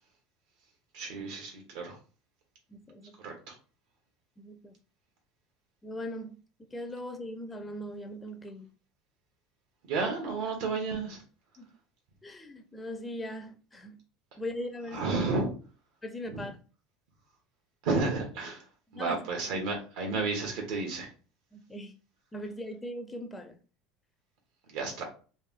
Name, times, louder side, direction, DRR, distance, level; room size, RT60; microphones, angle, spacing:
voice 1, 0.9-2.0 3.2-3.6 9.9-11.2 14.9-15.5 16.3-16.5 17.8-18.6 18.9-21.1 24.7-25.0, right 3 dB, 80° right, 1.2 m, -32 dB
voice 2, 2.7-3.1 4.4-4.7 5.8-6.3 6.7-8.7 11.6-11.7 12.2-14.0 14.4-15.0 16.0-16.6 18.9-19.2 19.5-19.6 21.5-21.9 22.3-23.5, left 1 dB, 10° left, 0.4 m, -39 dB
3.3 x 2.6 x 3.5 m
cardioid pair, 150°, 0 cm